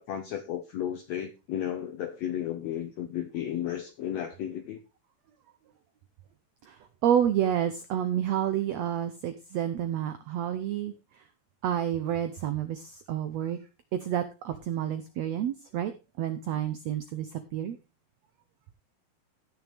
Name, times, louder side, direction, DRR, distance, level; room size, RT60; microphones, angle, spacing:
voice 1, 0.0-4.8, left 10 dB, 80° left, 1.5 m, -33 dB
voice 2, 6.7-10.9 11.6-13.6 13.9-15.9 16.2-17.8, right 10 dB, 80° right, 1.5 m, -29 dB
17.5 x 6.4 x 3.5 m
omnidirectional pair, 4.1 m